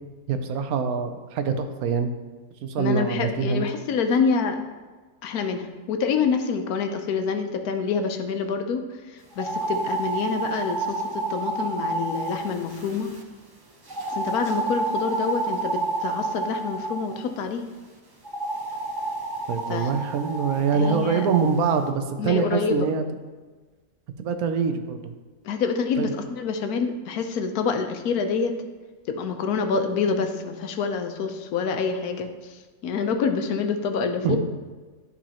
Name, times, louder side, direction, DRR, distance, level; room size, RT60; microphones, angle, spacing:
voice 1, 0.3-2.1 2.6-3.6 19.5-23.0 24.2-25.1 26.0-26.1 34.2-34.4, right 6 dB, 80° right, 8 dB, 1.1 m, -24 dB
voice 2, 2.8-4.6 5.2-13.1 14.1-17.6 19.7-19.9 20.7-21.3 22.2-22.9 25.4-28.5 29.1-34.4, left 5 dB, 85° left, 6 dB, 1.2 m, -27 dB
sound 1, 9.3-13.2 13.9-17.2 18.2-21.5, right 2 dB, 40° right, 0.3 m, -30 dB
11.5 x 4.1 x 2.9 m, 1.3 s
omnidirectional pair, 1.5 m